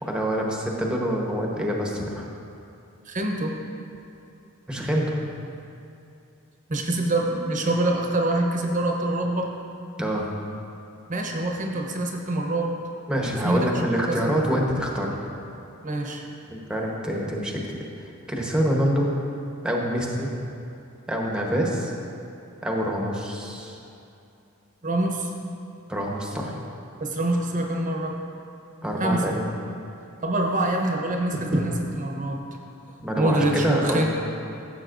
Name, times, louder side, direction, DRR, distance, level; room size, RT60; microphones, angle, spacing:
voice 1, 0.0-2.3 4.7-5.2 10.0-10.3 13.1-15.1 16.5-19.1 19.6-20.3 21.1-21.9 22.6-23.8 25.9-26.6 28.8-29.4 33.0-34.1, equal, 5° right, -2 dB, 1.0 m, -26 dB
voice 2, 3.1-3.6 6.7-9.5 11.1-12.7 13.4-13.7 14.1-14.5 15.8-16.2 24.8-25.3 27.0-28.2 29.0-29.4 30.2-32.6 33.2-34.1, right 1 dB, 40° right, 1 dB, 0.8 m, -25 dB
14.5 x 7.4 x 2.6 m, 2.7 s
head